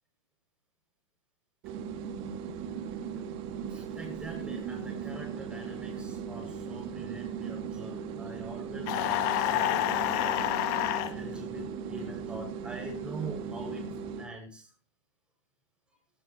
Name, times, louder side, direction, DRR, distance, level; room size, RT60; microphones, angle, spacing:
sound 1, 1.6-14.3, right 6 dB, 35° right, 2.4 m, -38 dB
voice 1, 3.7-10.5 11.1-13.9 14.2-14.7, right 3 dB, 5° right, 0 dB, 7.5 m, -44 dB
sound 2, 8.9-11.1, left 13 dB, 40° left, 1.9 m, -28 dB
19.0 x 12.5 x 3.2 m, 0.36 s
hypercardioid pair, 120°, 16 cm